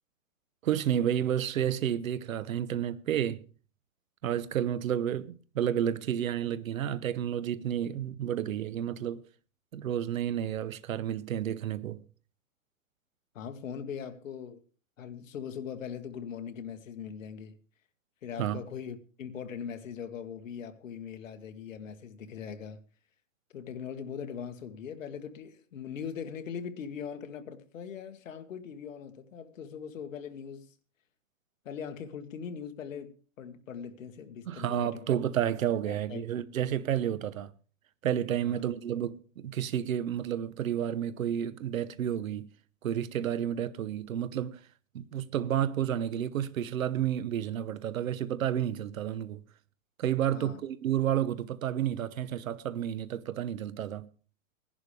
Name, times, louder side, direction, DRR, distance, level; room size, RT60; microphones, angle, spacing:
voice 1, 0.6-3.4 4.2-9.2 9.7-12.0 18.4-18.6 34.5-37.5 38.0-42.5 42.8-44.6 44.9-49.4 50.0-54.1, right 10 dB, 80° right, 1.1 m, -31 dB
voice 2, 13.4-14.6 15.0-17.5 18.2-22.8 23.5-30.7 31.7-35.1 35.9-36.2 38.5-38.6 50.3-50.6, left 7 dB, 70° left, 1.7 m, -41 dB
19.0 x 11.0 x 3.3 m
hypercardioid pair, 175°, 41 cm